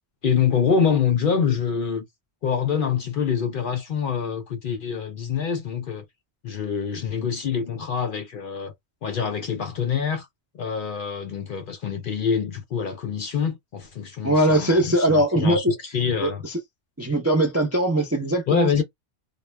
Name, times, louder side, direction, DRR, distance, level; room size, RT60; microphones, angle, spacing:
voice 1, 0.2-2.1 2.4-6.1 6.4-8.7 9.0-10.3 10.5-15.6 15.9-16.4 18.5-18.8, left 6 dB, 60° left, 0.6 m, -25 dB
voice 2, 14.2-15.7 16.2-16.6 17.0-18.8, right 1 dB, 25° right, 0.3 m, -21 dB
2.2 x 2.0 x 3.2 m
omnidirectional pair, 1.2 m